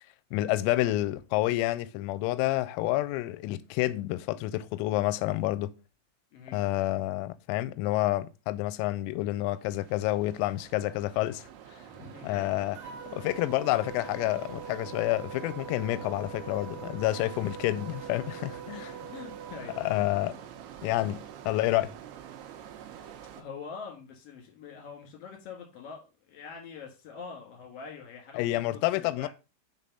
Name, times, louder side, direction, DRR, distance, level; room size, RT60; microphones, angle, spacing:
voice 1, 0.3-5.7 6.5-11.5 12.2-12.8 13.1-18.9 19.8-20.4 20.8-21.9 28.3-29.3, left 16 dB, 90° left, 3.3 m, -29 dB
voice 2, 6.3-6.6 11.9-12.5 19.1-19.7 22.7-23.0 23.3-29.3, left 5 dB, 55° left, 1.8 m, -44 dB
sound 1, 9.5-23.4, right 9 dB, 80° right, 2.3 m, -46 dB
sound 2, 12.7-19.9, right 6 dB, 45° right, 2.1 m, -44 dB
7.5 x 3.9 x 5.5 m
omnidirectional pair, 5.9 m